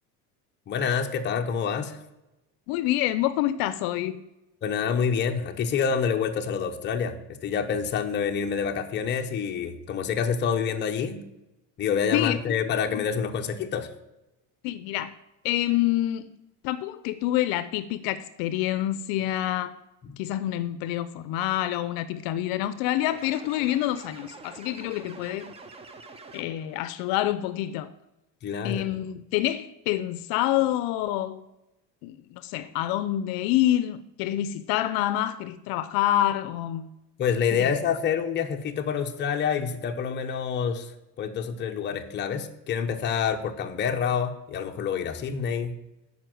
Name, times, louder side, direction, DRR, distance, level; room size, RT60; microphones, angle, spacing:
voice 1, 0.7-2.0 4.6-11.2 11.8-13.9 20.0-20.1 28.4-28.8 37.2-40.9 41.2-45.7, left 7 dB, 30° left, 0.8 m, -27 dB
voice 2, 2.7-4.2 12.1-12.6 12.9-13.0 14.6-15.1 15.4-16.3 16.6-19.8 20.2-25.5 26.3-27.9 28.6-31.4 32.0-36.9 37.6-37.7, left 13 dB, 70° left, 0.6 m, -27 dB
sound 1, 23.0-26.8, right 3 dB, 15° right, 0.5 m, -46 dB
9.6 x 5.3 x 7.7 m
cardioid pair, 160°, 38 cm